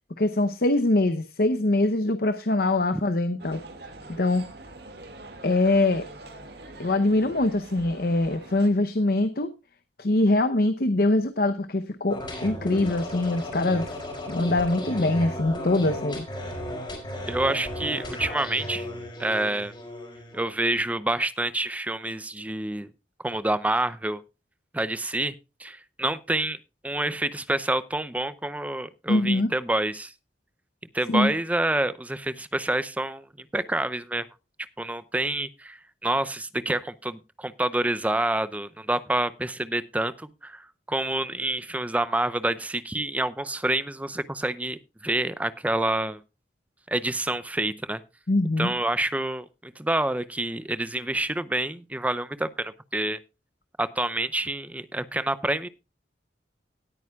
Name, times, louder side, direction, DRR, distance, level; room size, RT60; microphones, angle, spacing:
voice 1, 0.2-3.6 4.2-4.5 5.4-6.1 6.8-9.5 10.0-14.0 14.3-16.3 29.1-29.5 31.1-31.3 48.3-48.7, left 2 dB, 60° left, 10 dB, 0.8 m, -23 dB
sound 1, 3.4-8.7, right 2 dB, 65° right, 2.1 m, -44 dB
sound 2, 12.1-20.4, left 1 dB, 30° left, 4.6 m, -35 dB
voice 2, 17.3-18.9 19.2-19.7 20.3-22.9 23.2-24.2 24.7-25.3 25.6-26.6 26.8-30.1 30.9-33.3 33.5-34.3 34.8-46.2 46.9-48.0 48.6-53.2 53.8-55.7, right 1 dB, 10° right, 15 dB, 0.5 m, -27 dB
18.0 x 9.0 x 2.3 m, 0.27 s
head